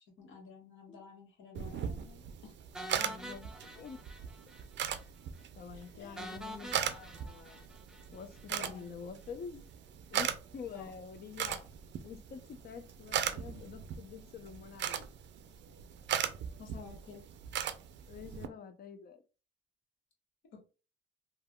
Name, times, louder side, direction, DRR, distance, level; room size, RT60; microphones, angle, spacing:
voice 1, 0.2-2.5 5.9-6.2 8.5-8.9 10.7-10.9 16.6-17.3 20.5-20.7, left 5 dB, 75° left, 1.3 m, -51 dB
sound 1, 1.5-18.5, right 9 dB, 65° right, 0.4 m, -39 dB
sound 2, 2.7-4.7 4.9-5.0 5.4-5.5 6.2-8.5, equal, 5° right, 0.4 m, -47 dB
voice 2, 2.9-4.0 5.6-7.7 8.1-9.6 10.1-11.7 12.0-15.1 18.1-19.2, left 6 dB, 50° left, 0.5 m, -47 dB
3.3 x 2.3 x 2.2 m
cardioid pair, 90°, 20 cm